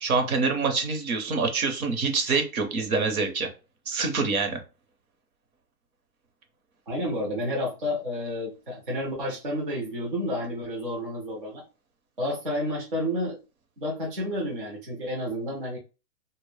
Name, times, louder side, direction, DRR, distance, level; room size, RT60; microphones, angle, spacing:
voice 1, 0.0-3.5 3.9-4.6, right 4 dB, 60° right, 4 dB, 0.8 m, -26 dB
voice 2, 6.9-11.6 12.2-13.4 13.8-15.8, equal, 35° right, -4 dB, 0.5 m, -30 dB
2.1 x 2.0 x 3.1 m, 0.30 s
hypercardioid pair, 165°, 49 cm